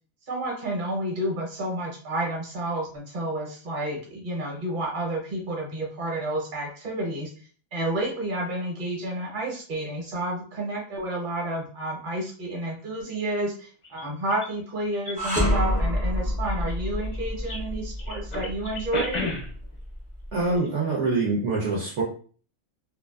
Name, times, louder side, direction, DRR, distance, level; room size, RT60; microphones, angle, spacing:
voice 1, 0.3-7.3 7.7-19.2, right 1 dB, 40° right, -1 dB, 0.9 m, -30 dB
sound 1, 13.2-13.4 13.8-14.5 14.9-15.4 16.5-17.6 18.0-19.7 20.5-20.7 21.0-21.1, left 2 dB, 50° left, 0.5 m, -34 dB
sound 2, 15.2-20.4, left 1 dB, 15° right, 0.3 m, -28 dB
voice 2, 20.3-22.0, right 3 dB, 65° right, -3 dB, 0.9 m, -25 dB
2.5 x 2.4 x 2.3 m, 0.42 s
omnidirectional pair, 1.4 m